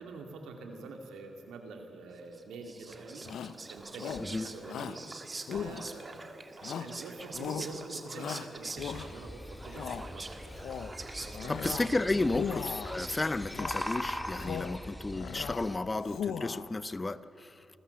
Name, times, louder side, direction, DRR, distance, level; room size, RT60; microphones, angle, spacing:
voice 1, 0.0-3.3 3.7-5.0 5.5-10.5 11.1-11.6 12.2-12.5, right 3 dB, 85° right, 3 dB, 2.5 m, -46 dB
Whispering, 2.3-14.3, right 3 dB, 35° right, 1.7 m, -45 dB
Shout, 3.2-3.6 4.0-4.3 4.7-5.0 5.5-6.2 6.6-7.0 7.3-7.7 8.1-9.3 9.6-10.1 10.5-10.9 11.3-11.9 12.3-13.0 13.5-13.9 14.3-14.8 15.1-15.7 16.0-16.7, left 8 dB, 80° left, 0.7 m, -38 dB
sound 1, 8.8-15.8, equal, 10° left, 1.7 m, -41 dB
voice 2, 11.5-17.5, left 2 dB, 30° left, 15 dB, 0.8 m, -32 dB
27.0 x 14.0 x 7.1 m, 2.7 s
supercardioid pair, 50°, 0 cm